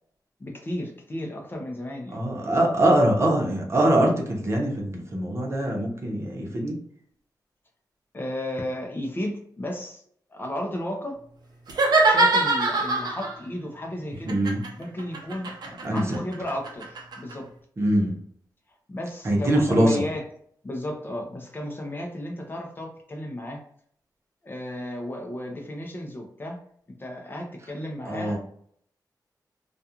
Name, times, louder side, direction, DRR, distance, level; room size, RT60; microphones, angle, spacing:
voice 1, 0.4-2.2 8.1-10.0 10.3-11.2 12.0-14.4 14.8-15.5 15.9-17.5 18.9-20.2 20.6-23.6 24.4-26.6 27.0-28.4, left 1 dB, 30° left, 2 dB, 0.5 m, -33 dB
voice 2, 2.1-6.7 14.3-14.6 15.8-16.2 17.8-18.2 19.2-20.0 28.1-28.4, right 1 dB, 40° right, -1 dB, 0.8 m, -23 dB
sound 1, 11.7-13.4 14.3-17.3, right 2 dB, 75° right, 0.6 m, -23 dB
2.4 x 2.3 x 2.8 m, 0.65 s
wide cardioid pair, 115°, 7 cm